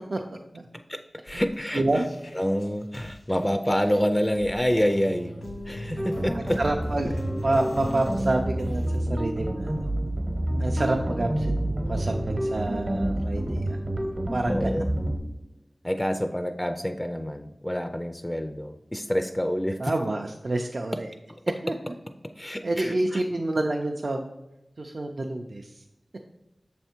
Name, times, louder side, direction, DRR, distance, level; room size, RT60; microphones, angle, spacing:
voice 1, 0.9-1.8 2.3-5.3 5.7-6.6 14.5-14.9 15.8-19.9 21.3-21.4 22.4-23.2, equal, 15° left, 7 dB, 0.3 m, -27 dB
sound 1, 1.3-9.0, left 1 dB, 90° left, 1.1 m, -49 dB
sound 2, 4.9-12.5, equal, 70° left, 0.6 m, -38 dB
sound 3, 6.0-15.2, right 1 dB, 50° right, 0.9 m, -28 dB
voice 2, 6.3-9.9 10.6-13.8 14.3-14.8 19.8-21.1 21.6-21.7 22.6-24.2 24.8-25.8, right 2 dB, 65° right, 2 dB, 0.4 m, -28 dB
6.3 x 3.4 x 4.3 m, 0.92 s
wide cardioid pair, 55°, 0 cm